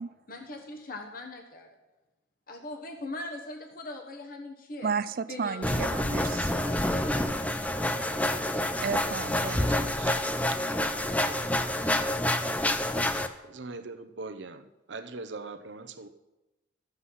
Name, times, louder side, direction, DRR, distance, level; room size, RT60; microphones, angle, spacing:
voice 1, 0.3-1.7 2.5-4.9 5.3-5.8, left 2 dB, 50° left, 3 dB, 1.2 m, -40 dB
voice 2, 4.8-6.5 8.8-9.9, right 6 dB, 50° right, 16 dB, 0.4 m, -33 dB
sound 1, 5.6-13.3, left 1 dB, 10° left, 0.5 m, -28 dB
voice 3, 9.6-10.2 13.5-14.6 14.9-16.1, right 3 dB, 70° right, 9 dB, 0.8 m, -41 dB
13.0 x 8.0 x 5.6 m, 1.0 s
head